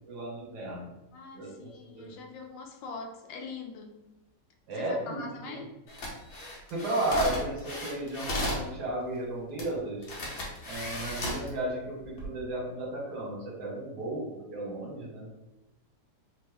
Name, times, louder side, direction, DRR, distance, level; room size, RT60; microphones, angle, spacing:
voice 1, 0.1-0.9 1.3-2.1 4.7-5.6 6.7-10.1 10.6-15.3, right 1 dB, 65° right, -3 dB, 1.5 m, -34 dB
voice 2, 1.1-4.0 4.8-5.7, left 3 dB, 80° left, 3 dB, 1.3 m, -42 dB
sound 1, 5.9-8.7 9.6-9.7 10.0-11.5 12.0-12.3, left 1 dB, 60° left, 1.3 m, -35 dB
3.4 x 2.0 x 3.4 m, 0.96 s
omnidirectional pair, 2.0 m